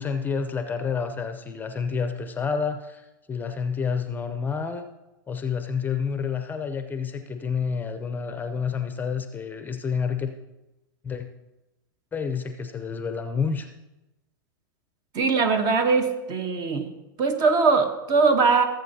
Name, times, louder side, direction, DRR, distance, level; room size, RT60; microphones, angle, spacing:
voice 1, 0.0-4.9 5.3-10.3 11.0-11.3 12.1-13.7, left 6 dB, 15° left, 8 dB, 0.6 m, -29 dB
voice 2, 15.1-16.9 17.2-18.6, right 4 dB, 35° right, 7 dB, 1.1 m, -21 dB
16.5 x 7.8 x 2.8 m, 0.98 s
hypercardioid pair, 105°, 11 cm